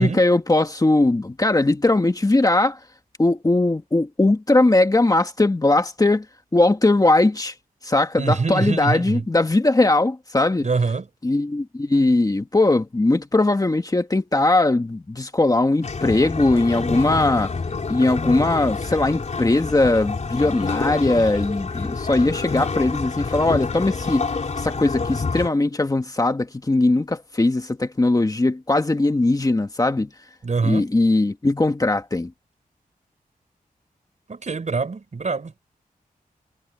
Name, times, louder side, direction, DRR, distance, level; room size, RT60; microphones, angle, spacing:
voice 1, 0.0-2.8 3.2-6.2 6.5-7.5 7.8-10.7 11.2-17.5 17.9-24.3 24.6-30.1 30.6-32.3, left 2 dB, 25° left, 1.7 m, -20 dB
voice 2, 8.2-9.2 10.6-11.1 30.4-30.9 34.3-35.6, right 4 dB, 50° right, 5.1 m, -24 dB
sound 1, 15.8-25.5, left 4 dB, 50° left, 3.9 m, -28 dB
wide cardioid pair, 115°, 15 cm